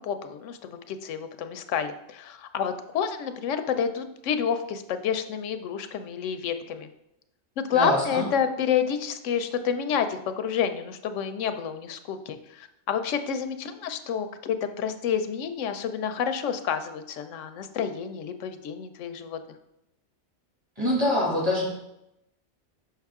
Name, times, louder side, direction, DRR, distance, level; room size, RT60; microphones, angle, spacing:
voice 1, 0.0-6.9 7.6-19.4, left 7 dB, 90° left, 9 dB, 1.0 m, -29 dB
voice 2, 7.7-8.2 20.8-21.7, left 1 dB, 20° right, -4 dB, 2.2 m, -24 dB
6.0 x 5.7 x 3.5 m, 0.84 s
omnidirectional pair, 1.2 m